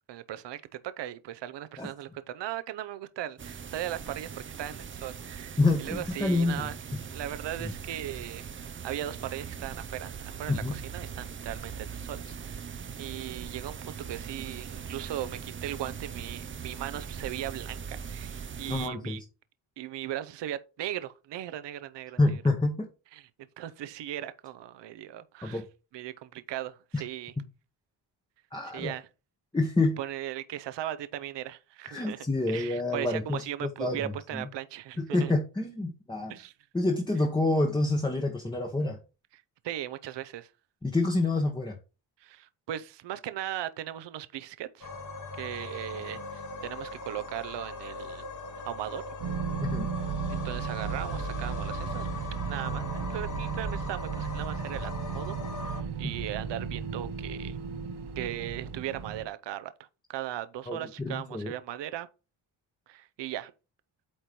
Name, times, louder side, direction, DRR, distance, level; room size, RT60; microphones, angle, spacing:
voice 1, 0.1-6.8 7.1-8.5 8.8-19.2 19.8-22.4 23.1-23.2 23.6-25.6 25.9-27.3 28.7-29.1 30.0-35.3 36.3-36.5 39.6-40.5 42.2-44.9 45.4-48.2 48.6-49.1 50.3-52.1 52.5-57.6 58.2-59.7 60.1-62.1 62.9-63.5, right 12 dB, 65° right, 0.6 m, -38 dB
sound 1, 3.4-18.9, right 6 dB, 25° right, 0.5 m, -41 dB
voice 2, 5.6-7.0 7.6-7.7 10.5-10.7 18.7-19.2 22.2-22.9 25.4-25.6 26.9-27.0 28.5-28.9 29.5-30.0 31.9-34.5 35.0-36.3 36.7-39.0 40.8-41.8 49.6-49.9 60.7-61.5, left 2 dB, 10° left, 0.9 m, -28 dB
sound 2, 44.8-55.8, left 3 dB, 40° left, 1.4 m, -40 dB
sound 3, 49.2-59.2, right 6 dB, 90° right, 1.1 m, -35 dB
8.7 x 3.0 x 5.2 m
cardioid pair, 120°, 47 cm